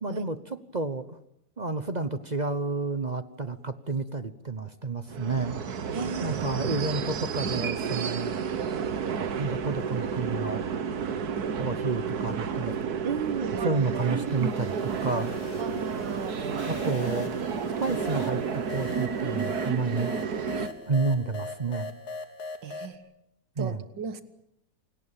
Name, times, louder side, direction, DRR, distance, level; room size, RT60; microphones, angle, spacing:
voice 1, 0.0-1.0 1.6-5.6 6.2-8.3 9.4-10.6 11.6-12.7 13.6-15.3 16.4-17.3 17.8-18.4 18.7-20.1 20.9-21.9 23.6-23.8, right 3 dB, 30° right, 12 dB, 0.9 m, -30 dB
sound 1, 5.1-20.7, right 6 dB, 60° right, 1.7 m, -31 dB
voice 2, 5.9-6.7 11.3-11.6 13.0-13.6 15.6-16.4 22.6-23.1 23.6-24.2, right 5 dB, 85° right, 12 dB, 2.2 m, -35 dB
sound 2, 13.9-23.0, left 4 dB, 60° left, 2.3 m, -41 dB
28.0 x 18.0 x 9.0 m, 0.79 s
omnidirectional pair, 1.9 m